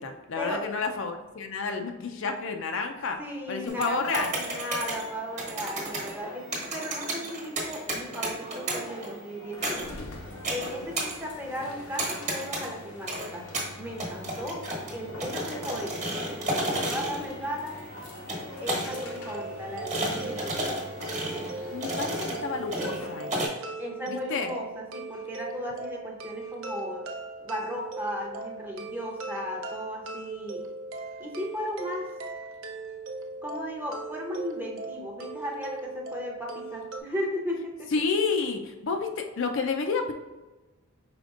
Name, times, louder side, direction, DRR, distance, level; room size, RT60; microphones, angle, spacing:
voice 1, 0.0-3.2 3.5-4.3 21.7-23.5 24.1-24.5 37.9-40.1, left 4 dB, 55° left, 5 dB, 0.4 m, -30 dB
voice 2, 3.2-10.0 10.5-13.5 13.8-14.6 14.9-17.8 18.6-20.7 23.8-27.1 27.4-30.6 31.2-32.1 33.4-37.9, equal, 10° right, -1 dB, 0.7 m, -36 dB
sound 1, 3.7-23.5, right 1 dB, 30° right, 1.2 m, -34 dB
sound 2, 9.5-23.3, left 2 dB, 90° left, 0.8 m, -44 dB
sound 3, 18.8-37.0, right 3 dB, 65° right, 0.6 m, -39 dB
5.1 x 4.2 x 2.5 m, 1.2 s
head